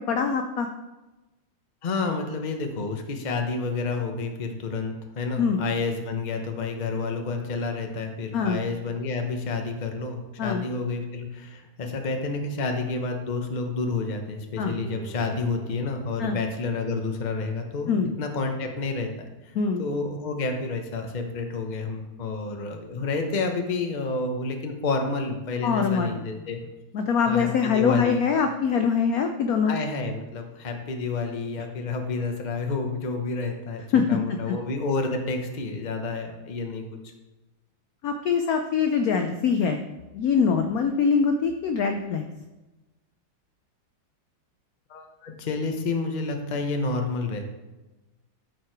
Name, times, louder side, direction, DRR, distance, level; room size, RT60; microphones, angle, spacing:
voice 1, 0.1-0.7 5.4-5.6 8.3-8.6 10.4-10.6 14.6-14.8 16.2-16.4 17.9-18.1 19.5-19.8 25.6-26.2 26.9-29.7 33.9-34.4 38.0-39.8 40.1-42.2, left 6 dB, 75° left, 6 dB, 0.8 m, -23 dB
voice 2, 1.8-17.9 18.2-19.1 19.4-26.6 27.3-28.2 29.6-33.8 34.1-36.8 44.9-47.5, left 3 dB, 40° left, 4 dB, 0.6 m, -29 dB
Bowed string instrument, 14.5-17.6 18.1-18.2, right 5 dB, 55° left, 2.4 m, -45 dB
12.0 x 4.7 x 4.7 m, 1.1 s
omnidirectional pair, 2.3 m